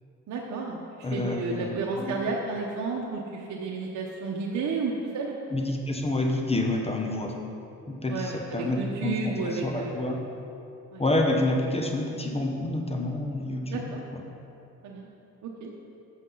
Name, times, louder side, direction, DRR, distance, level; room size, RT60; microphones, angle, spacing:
voice 1, 0.3-5.4 8.1-10.1 10.9-11.0 13.7-14.0 14.8-15.1 15.4-15.7, right 4 dB, 70° right, -2 dB, 1.0 m, -32 dB
voice 2, 1.0-2.2 5.5-7.4 7.9-10.2 11.0-13.9, left 2 dB, 20° left, 2 dB, 1.0 m, -28 dB
11.5 x 7.5 x 4.0 m, 2.8 s
cardioid pair, 90°, 30 cm